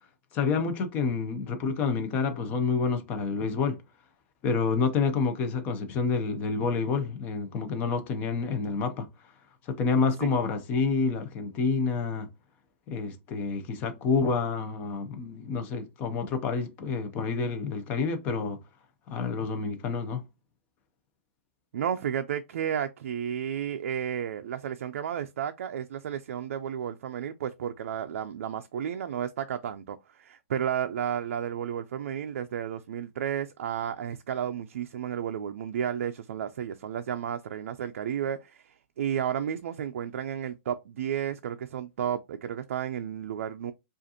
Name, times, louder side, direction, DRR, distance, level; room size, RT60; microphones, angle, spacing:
voice 1, 0.3-3.8 4.4-9.1 9.7-12.3 12.9-18.6 19.1-20.2, left 4 dB, 20° left, 0.6 m, -28 dB
voice 2, 21.7-43.7, right 9 dB, 70° right, 0.4 m, -32 dB
5.0 x 2.5 x 2.8 m
hypercardioid pair, 175°, 7 cm